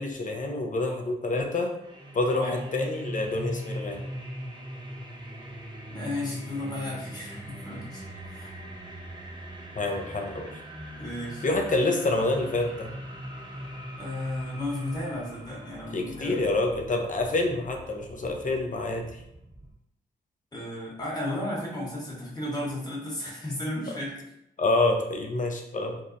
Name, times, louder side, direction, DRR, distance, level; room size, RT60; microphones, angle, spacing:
voice 1, 0.0-1.7 2.1-4.0 9.7-10.6 11.4-12.9 15.9-19.1 23.9-24.0 24.6-26.0, left 2 dB, 40° left, 2 dB, 0.5 m, -27 dB
sound 1, 1.8-19.7, equal, 20° right, 0.7 m, -41 dB
voice 2, 5.9-8.5 9.7-9.9 11.0-11.5 14.0-16.4 20.5-24.2, left 1 dB, 20° left, -5 dB, 1.1 m, -34 dB
2.7 x 2.0 x 2.5 m, 0.80 s
supercardioid pair, 40°, 21 cm